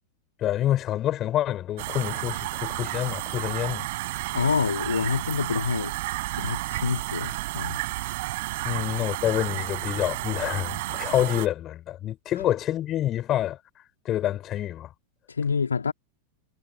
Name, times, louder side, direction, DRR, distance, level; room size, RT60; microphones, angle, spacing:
voice 1, 0.4-3.8 8.6-13.6 14.0-14.9, left 12 dB, 30° left, 4.9 m, -27 dB
sound 1, 1.8-11.5, right 19 dB, 50° right, 6.2 m, -32 dB
voice 2, 4.3-5.9 6.4-7.8 8.7-8.8 15.3-15.9, left 5 dB, 75° left, 2.4 m, -27 dB
figure-of-eight pair, 90°, 0 cm